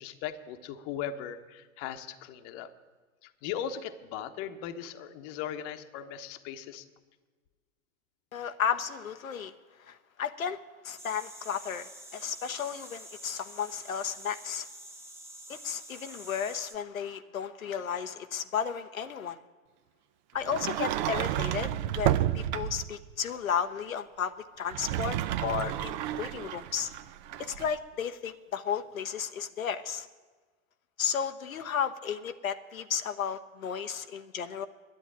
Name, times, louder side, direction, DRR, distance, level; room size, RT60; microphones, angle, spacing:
voice 1, 0.0-2.7 3.2-6.8, left 9 dB, 35° left, 8 dB, 1.0 m, -38 dB
voice 2, 8.3-9.5 9.8-10.6 10.8-14.7 15.5-19.4 20.3-24.3 24.6-26.9 27.4-30.1 31.0-34.7, left 7 dB, 80° left, 8 dB, 0.7 m, -33 dB
sound 1, 11.0-16.7, right 1 dB, 5° right, 1.1 m, -48 dB
Sliding door, 20.4-22.9 24.6-27.8, right 12 dB, 35° right, 0.5 m, -31 dB
10.5 x 8.8 x 10.0 m, 1.4 s
figure-of-eight pair, 100°, 41 cm